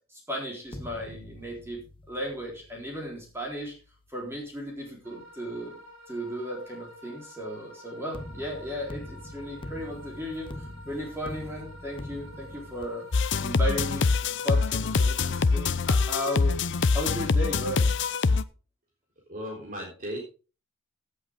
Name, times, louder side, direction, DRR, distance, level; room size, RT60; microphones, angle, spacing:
voice 1, 0.1-1.8 2.1-3.7 4.1-5.7 6.1-10.5 10.9-13.1 13.4-16.6 16.9-18.0, equal, 10° right, -2 dB, 3.9 m, -35 dB
sound 1, 0.7-5.7 8.1-12.9, left 1 dB, 25° left, 0.9 m, -44 dB
sound 2, 5.0-17.1, equal, 65° right, 4.8 m, -50 dB
sound 3, 13.1-18.4, left 4 dB, 60° left, 0.6 m, -24 dB
voice 2, 19.3-20.2, equal, 40° right, -1 dB, 3.8 m, -36 dB
16.5 x 7.8 x 3.7 m, 0.34 s
head